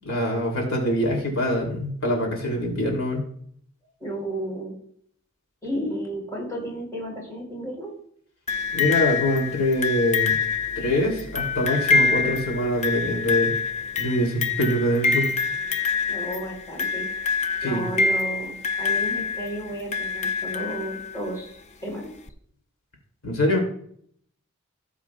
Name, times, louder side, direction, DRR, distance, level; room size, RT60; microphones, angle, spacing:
voice 1, 0.0-3.2 8.7-10.4 10.8-13.5 14.0-15.3 17.6-17.8 23.2-23.6, left 1 dB, 70° left, 0 dB, 3.0 m, -24 dB
voice 2, 4.0-4.7 5.6-7.9 16.1-17.1 17.6-22.1, right 1 dB, 15° left, -3 dB, 4.1 m, -33 dB
sound 1, 8.5-21.3 22.3-22.4, left 4 dB, 30° left, 0.5 m, -26 dB
17.5 x 7.4 x 2.4 m, 0.62 s
head